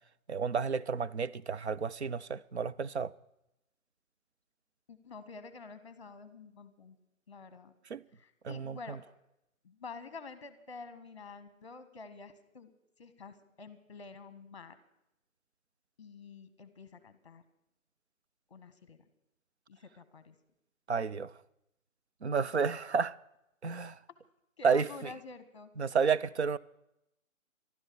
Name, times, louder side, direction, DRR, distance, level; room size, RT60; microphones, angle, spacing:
voice 1, 0.3-3.1 7.9-8.0 8.4-8.8 20.9-21.3 22.2-23.1 23.6-24.0 24.6-24.9 25.8-26.6, right 5 dB, 55° right, 0.5 m, -31 dB
voice 2, 4.9-7.0 7.3-7.7 8.2-9.0 9.6-12.7 13.0-14.8 16.0-17.4 18.5-19.0 19.7-20.3 24.6-25.7, left 4 dB, 20° left, 1.1 m, -48 dB
14.0 x 12.0 x 6.8 m
hypercardioid pair, 175°, 41 cm